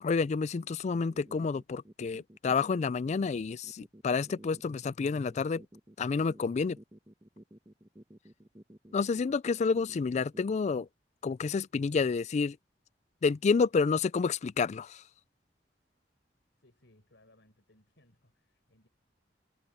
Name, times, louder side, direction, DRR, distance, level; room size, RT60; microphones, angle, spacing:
voice 1, 0.0-5.6 6.0-6.8 8.9-10.9 11.2-12.6 13.2-15.0, left 5 dB, 40° left, 0.3 m, -29 dB
sound 1, 0.9-10.9, right 1 dB, 20° right, 1.2 m, -53 dB
voice 2, 16.6-18.9, left 1 dB, 80° left, 4.6 m, -65 dB
head